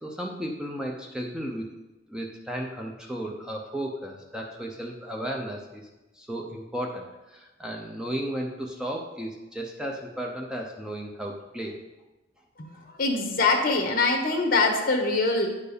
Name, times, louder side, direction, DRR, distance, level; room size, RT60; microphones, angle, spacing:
voice 1, 0.0-1.7 2.1-5.8 6.1-11.8, right 1 dB, 5° right, -1 dB, 0.6 m, -34 dB
voice 2, 12.6-15.5, left 3 dB, 50° left, 2 dB, 1.3 m, -24 dB
9.5 x 4.6 x 5.1 m, 1.1 s
head